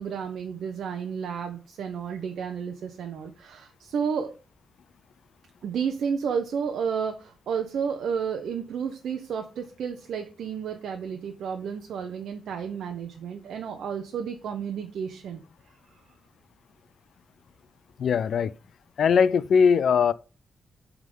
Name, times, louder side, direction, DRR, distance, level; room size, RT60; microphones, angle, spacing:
voice 1, 0.0-4.3 5.6-15.4, right 7 dB, 75° right, 0.8 m, -31 dB
voice 2, 18.0-18.5 19.0-20.1, left 6 dB, 60° left, 0.3 m, -20 dB
8.1 x 3.7 x 5.4 m
wide cardioid pair, 175°, 0 cm